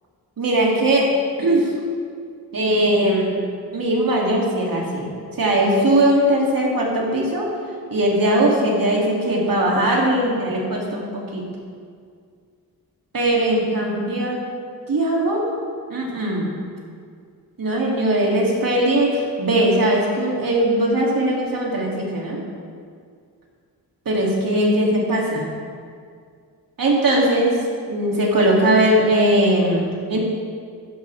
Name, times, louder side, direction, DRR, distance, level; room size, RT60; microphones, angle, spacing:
voice 1, 0.4-1.1 1.4-1.7 2.5-3.4 3.7-5.1 5.4-7.5 7.9-11.4 13.1-14.4 14.9-15.5 15.9-16.5 17.6-22.4 24.0-25.5 26.8-27.6 27.9-30.2, right 1 dB, 60° right, -3 dB, 3.0 m, -19 dB
15.0 x 11.5 x 3.6 m, 2.2 s
cardioid pair, 85°, 38 cm